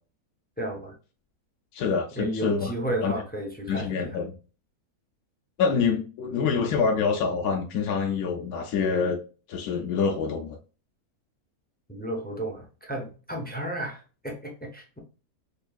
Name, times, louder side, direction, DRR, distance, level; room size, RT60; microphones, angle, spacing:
voice 1, 0.6-0.9 2.2-3.9 11.9-15.0, right 1 dB, 15° left, 0.3 m, -33 dB
voice 2, 1.7-2.7 3.0-3.1 3.7-4.3 5.6-9.2 9.5-10.6, left 5 dB, 75° left, 1.1 m, -26 dB
5.2 x 2.6 x 2.3 m
omnidirectional pair, 1.6 m